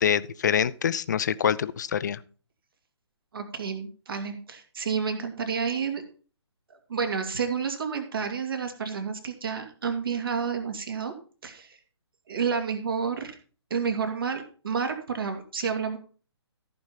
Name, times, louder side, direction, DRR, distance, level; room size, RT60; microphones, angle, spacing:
voice 1, 0.0-2.2, left 8 dB, 40° left, 16 dB, 0.5 m, -25 dB
voice 2, 3.3-6.0 6.7-11.1 11.4-11.8 12.3-13.3 13.7-16.0, right 6 dB, 55° right, 5 dB, 2.5 m, -30 dB
14.0 x 5.3 x 5.7 m, 0.39 s
figure-of-eight pair, 135°, 14 cm